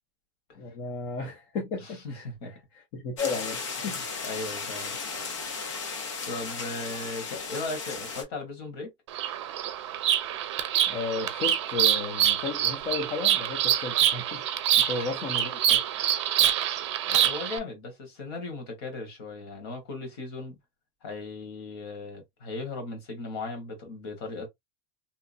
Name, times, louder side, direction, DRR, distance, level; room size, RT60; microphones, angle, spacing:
voice 1, 0.6-2.3 2.9-4.0 10.9-14.5 14.8-15.8, left 4 dB, 30° left, 0.5 m, -33 dB
voice 2, 1.8-2.5 3.8-5.0 6.2-8.9 14.8-15.0 16.0-16.1 17.1-20.6 21.0-24.5, left 3 dB, 60° left, 1.4 m, -37 dB
sound 1, 3.2-8.2, left 5 dB, 85° left, 1.1 m, -35 dB
Bird vocalization bird call bird song, 9.1-17.6, right 11 dB, 70° right, 0.5 m, -26 dB
2.8 x 2.2 x 2.5 m
supercardioid pair, 180°, 15 cm